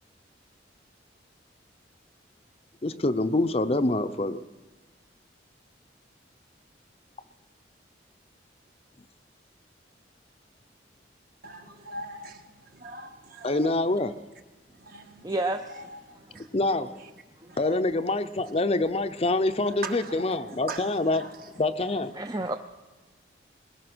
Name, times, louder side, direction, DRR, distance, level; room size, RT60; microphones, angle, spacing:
voice 1, 2.8-4.4 13.4-14.1 16.5-17.0 17.6-21.3 21.6-22.1, left 2 dB, 30° left, 11 dB, 0.6 m, -26 dB
voice 2, 11.4-13.7 14.8-15.3 15.7-16.5 17.5-17.8 19.6-21.3, right 2 dB, 50° right, 5 dB, 1.7 m, -41 dB
voice 3, 15.2-15.8 17.4-17.5 22.1-22.6, right 2 dB, 20° right, 6 dB, 0.5 m, -30 dB
21.0 x 21.0 x 6.2 m, 1.3 s
head